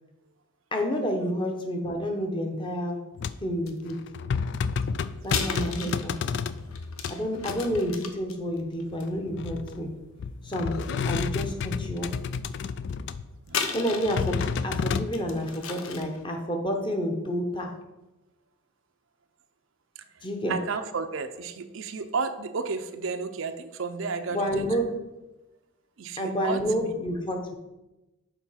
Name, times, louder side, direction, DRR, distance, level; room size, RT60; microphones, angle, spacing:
voice 1, 0.7-3.0 3.4-4.0 5.2-6.1 7.1-9.9 10.4-10.7 11.0-12.1 13.7-17.7 20.2-20.6 24.3-24.9 26.2-27.5, equal, 20° left, 3 dB, 0.9 m, -29 dB
sound 1, 3.2-3.5 3.9-7.1 7.4-7.8 8.9-9.9 10.2-13.3 13.9-15.1, left 5 dB, 55° left, 0.3 m, -30 dB
sound 2, 3.7-3.9 5.2-10.0 10.6-11.2 11.6-11.7 13.5-14.7 15.1-16.2, left 6 dB, 75° left, 0.8 m, -35 dB
voice 2, 20.5-24.6 26.0-26.9, right 4 dB, 65° right, 9 dB, 0.5 m, -32 dB
7.0 x 4.4 x 5.6 m, 1.0 s
head